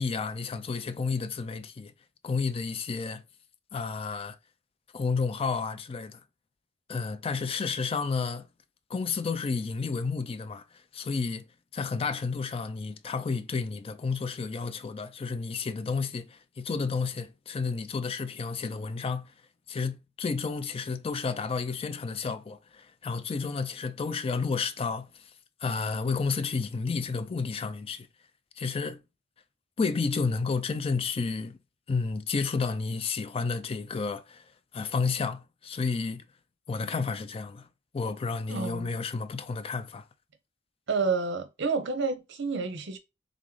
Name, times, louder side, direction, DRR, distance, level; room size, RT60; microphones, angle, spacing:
voice 1, 0.0-1.9 2.2-3.2 3.7-4.4 4.9-6.2 6.9-8.5 8.9-10.6 10.9-11.5 11.7-19.3 19.7-25.1 25.6-28.1 28.6-29.0 29.8-31.6 31.9-34.4 34.7-36.2 36.7-37.7 37.9-40.0, left 4 dB, 30° left, 0.4 m, -31 dB
voice 2, 38.5-38.9 40.9-43.0, right 4 dB, 65° right, 0.7 m, -29 dB
3.6 x 3.1 x 3.8 m
head